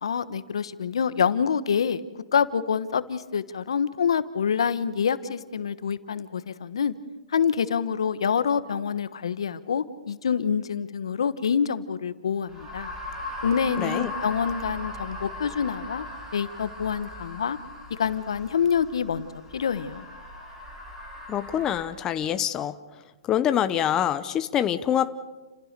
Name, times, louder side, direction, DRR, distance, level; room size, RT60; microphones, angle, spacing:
voice 1, 0.0-2.0 2.3-6.9 7.3-12.9 13.4-16.0 16.3-17.6 17.9-19.3 19.5-20.1, left 7 dB, 75° left, 14 dB, 1.3 m, -26 dB
sound 1, 12.5-21.8, left 2 dB, 15° right, 5.5 m, -39 dB
voice 2, 13.8-14.1 21.3-22.8 23.3-25.1, left 10 dB, 20° left, 11 dB, 0.9 m, -25 dB
30.0 x 16.5 x 6.8 m, 1.2 s
hypercardioid pair, 135°, 3 cm